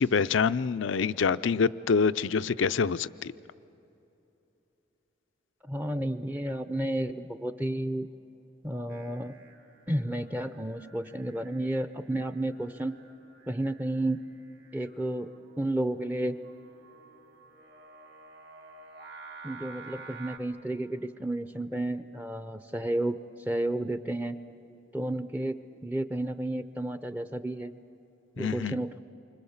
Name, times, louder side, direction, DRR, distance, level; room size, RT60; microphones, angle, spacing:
voice 1, 0.0-3.3 28.4-28.8, left 5 dB, 85° left, 14 dB, 0.5 m, -26 dB
voice 2, 5.7-8.1 8.6-9.4 9.9-12.9 13.5-14.2 14.7-15.3 15.6-16.4 19.4-24.4 24.9-27.7 28.4-29.0, right 1 dB, 10° right, 10 dB, 0.5 m, -32 dB
Singing, 8.9-20.4, right 4 dB, 60° right, 2.2 m, -51 dB
28.5 x 25.5 x 7.2 m, 3.0 s
head